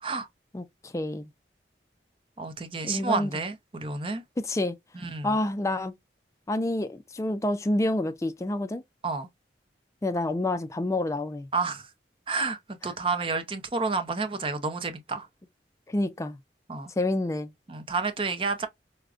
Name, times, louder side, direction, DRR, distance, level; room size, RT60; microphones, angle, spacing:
voice 1, 0.5-1.3 2.8-3.3 4.4-4.8 5.2-5.9 6.5-8.8 10.0-11.5 15.9-16.4 17.0-17.5, left 1 dB, 15° left, 0.3 m, -28 dB
voice 2, 2.4-4.2 4.9-5.3 9.0-9.3 11.5-11.9 12.3-12.6 12.8-15.3 16.7-16.9 17.7-18.7, right 4 dB, 30° right, 0.6 m, -30 dB
4.8 x 2.1 x 2.4 m
head